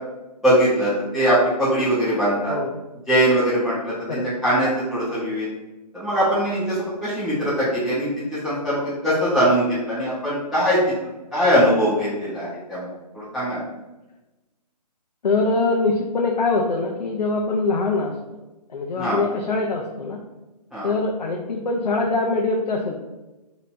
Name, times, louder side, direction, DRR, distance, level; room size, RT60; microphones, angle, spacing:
voice 1, 0.4-2.5 3.1-5.5 5.9-10.8 11.3-12.9 13.1-13.6 18.9-19.2 20.7-20.9, equal, ahead, -17 dB, 1.0 m, -21 dB
voice 2, 15.2-18.4 18.7-20.2 20.8-23.0, left 3 dB, 80° left, 0 dB, 0.7 m, -23 dB
5.4 x 2.9 x 2.7 m, 1.0 s
hypercardioid pair, 165°, 21 cm